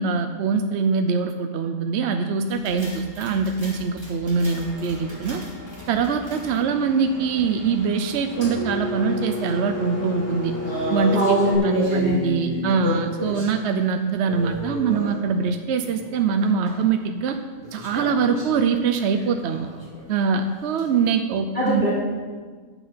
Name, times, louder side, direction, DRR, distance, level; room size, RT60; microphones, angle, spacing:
voice 1, 0.0-5.4 5.9-10.5 10.9-11.2 11.6-17.4 17.7-19.7 20.1-21.8, right 5 dB, 65° right, 7 dB, 0.8 m, -23 dB
sound 1, 2.5-6.7 8.6-9.7 10.1-10.2 10.6-13.6 14.2-15.6 15.9-16.8 17.6-20.1 20.6-20.8, equal, 20° right, 2.6 m, -34 dB
Engine, 4.4-11.6, left 1 dB, 65° left, 2.7 m, -33 dB
voice 2, 11.1-12.2 21.5-21.9, right 1 dB, 35° right, -6 dB, 2.7 m, -21 dB
10.0 x 7.8 x 5.6 m, 1.5 s
omnidirectional pair, 1.4 m